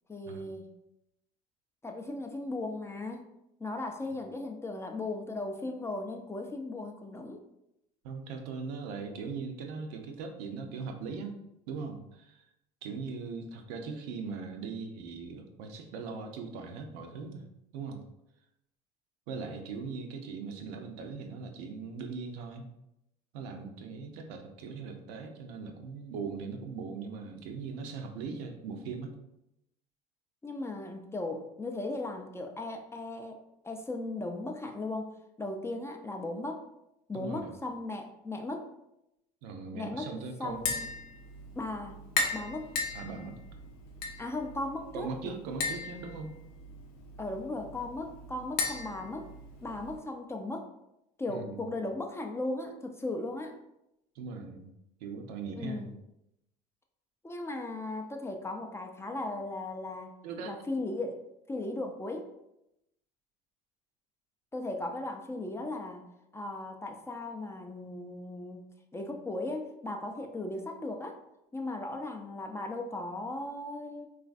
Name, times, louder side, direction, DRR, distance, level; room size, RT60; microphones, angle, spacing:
voice 1, 0.1-0.7 1.8-3.2 3.6-7.4 30.4-33.4 33.6-35.1 35.4-36.7 37.1-38.7 39.7-40.1 40.4-40.9 41.6-42.7 44.2-45.4 47.2-49.3 49.6-50.7 51.2-53.6 55.6-56.0 57.2-60.1 60.5-61.2 61.5-62.3 64.5-68.6 68.9-71.2 71.5-74.1, left 2 dB, 15° left, 3 dB, 0.3 m, -37 dB
voice 2, 8.0-11.4 11.7-12.4 12.8-17.4 17.7-18.0 19.3-22.7 23.3-29.1 37.1-37.5 39.4-40.7 42.9-43.4 44.9-46.3 51.3-51.8 54.2-54.7 55.0-55.9 60.2-60.6, right 4 dB, 75° right, 4 dB, 0.5 m, -40 dB
Tap, 40.5-50.0, left 4 dB, 75° left, 0.6 m, -37 dB
3.1 x 2.4 x 2.4 m, 0.86 s
hypercardioid pair, 80°, 20 cm